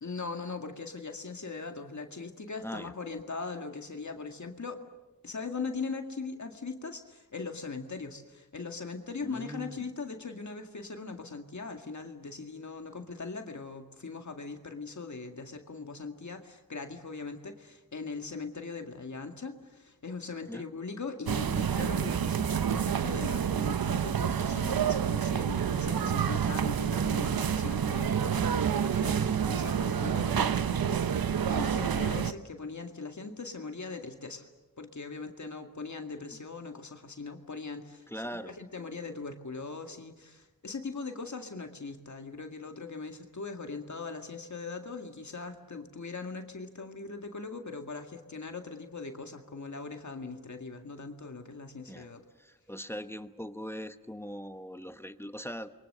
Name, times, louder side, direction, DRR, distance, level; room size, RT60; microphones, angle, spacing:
voice 1, 0.0-4.8 5.2-34.5 34.8-38.1 38.5-52.2, left 4 dB, 55° left, 5 dB, 2.0 m, -40 dB
voice 2, 2.6-2.9 9.2-9.9 20.5-20.6 38.1-38.5 51.9-52.1 52.4-55.7, equal, 5° left, 10 dB, 1.0 m, -40 dB
sound 1, 21.3-32.3, right 8 dB, 85° right, 0.9 m, -28 dB
29.5 x 23.5 x 6.7 m, 1.1 s
wide cardioid pair, 90°, 35 cm